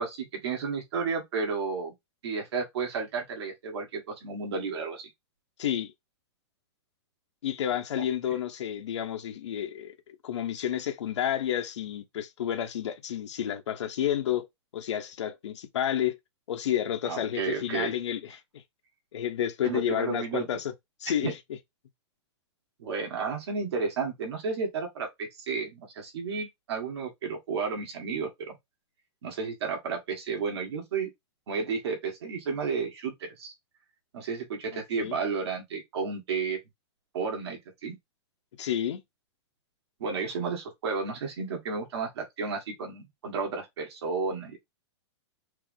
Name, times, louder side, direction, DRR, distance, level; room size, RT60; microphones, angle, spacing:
voice 1, 0.0-1.9 2.2-5.1 17.0-17.9 19.6-20.5 21.2-21.3 22.8-28.6 29.2-31.1 31.5-33.5 34.1-36.6 37.1-38.0 40.0-44.6, right 5 dB, 65° right, 1.6 m, -32 dB
voice 2, 5.6-5.9 7.4-14.5 14.7-16.2 16.5-18.6 19.1-20.7 21.0-21.4 34.7-35.2 38.6-39.0, left 10 dB, 80° left, 0.9 m, -30 dB
4.6 x 2.0 x 3.6 m
supercardioid pair, 170°, 15 cm